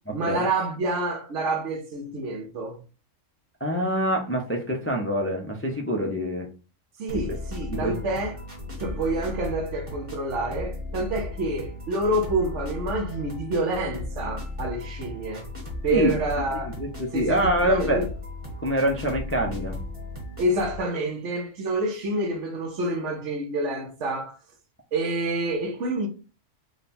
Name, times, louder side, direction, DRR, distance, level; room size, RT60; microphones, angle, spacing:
voice 1, 0.1-2.8 7.0-8.4 8.8-15.4 15.8-16.8 17.1-18.1 20.4-24.4 24.9-26.1, right 2 dB, 70° right, 1.2 m, -28 dB
voice 2, 3.6-6.5 7.1-7.4 7.7-8.0 15.9-16.1 16.8-16.9 17.1-18.0 18.6-19.8, equal, 20° left, 0.4 m, -25 dB
sound 1, 7.1-20.8, left 2 dB, 25° right, 1.3 m, -36 dB
3.7 x 2.2 x 4.2 m
omnidirectional pair, 1.3 m